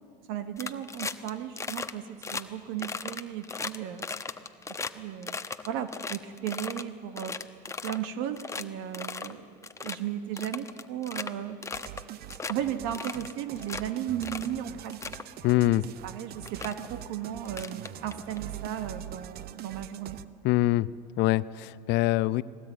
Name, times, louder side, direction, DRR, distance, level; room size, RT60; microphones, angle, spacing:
voice 1, 0.3-4.1 4.9-5.4 5.6-7.4 7.8-9.5 9.8-11.6 12.5-15.0 16.0-20.2, right 10 dB, 65° right, 10 dB, 1.3 m, -35 dB
sound 1, 0.6-1.3 1.6-1.9 2.2-2.4 2.8-4.9 5.2-6.8 7.2-8.1 8.4-8.6 8.9-9.3 9.6-10.0 10.4-11.3 11.6-12.0 12.3-12.5 12.9-13.8 14.2-14.5 14.8-15.2 16.0-16.1 16.5-16.7 17.4-18.4, left 4 dB, 15° left, 1.0 m, -36 dB
sound 2, 11.7-20.2, right 12 dB, 50° right, 0.8 m, -43 dB
voice 2, 15.4-15.9 20.4-20.9 21.2-22.4, left 17 dB, 55° left, 17 dB, 0.7 m, -24 dB
21.0 x 18.0 x 9.1 m, 2.5 s
supercardioid pair, 95°, 21 cm